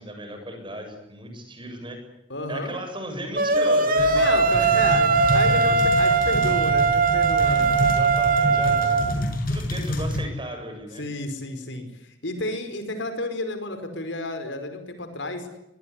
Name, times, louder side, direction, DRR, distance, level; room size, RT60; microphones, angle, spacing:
voice 1, 0.0-2.0 2.5-4.4 5.3-6.2 7.4-11.0, right 1 dB, 25° right, 6 dB, 7.5 m, -36 dB
voice 2, 2.3-2.7 4.1-7.8 8.4-8.9 11.0-15.5, left 2 dB, 65° left, 8 dB, 5.1 m, -31 dB
sound 1, 3.4-9.1, right 4 dB, 45° right, 2.2 m, -20 dB
sound 2, 4.0-10.2, left 1 dB, 50° left, 6.2 m, -28 dB
24.5 x 21.0 x 9.9 m, 0.86 s
head